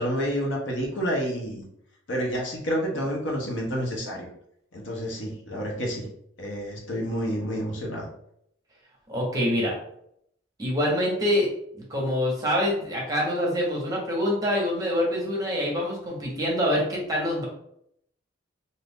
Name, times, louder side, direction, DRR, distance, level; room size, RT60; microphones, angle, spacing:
voice 1, 0.0-1.6 2.1-4.3 4.7-6.1 6.4-8.1, equal, 70° left, -1 dB, 0.8 m, -29 dB
voice 2, 9.1-9.7 10.6-11.5 11.9-17.4, equal, 20° right, -3 dB, 0.9 m, -25 dB
2.6 x 2.5 x 3.5 m, 0.71 s
head